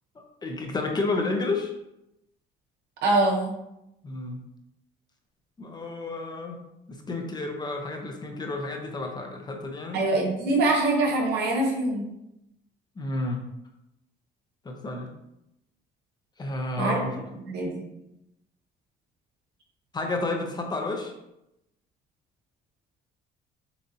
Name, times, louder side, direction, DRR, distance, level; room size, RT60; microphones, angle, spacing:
voice 1, 0.2-1.7 4.0-4.4 5.6-6.6 6.9-10.0 13.0-13.4 14.6-15.1 16.4-17.2 19.9-21.1, left 2 dB, 25° left, 3 dB, 0.7 m, -31 dB
voice 2, 3.0-3.5 9.9-12.1 16.8-17.0 17.4-17.8, right 2 dB, 75° right, -2 dB, 1.4 m, -24 dB
6.9 x 2.6 x 2.7 m, 0.85 s
cardioid pair, 110°, 17 cm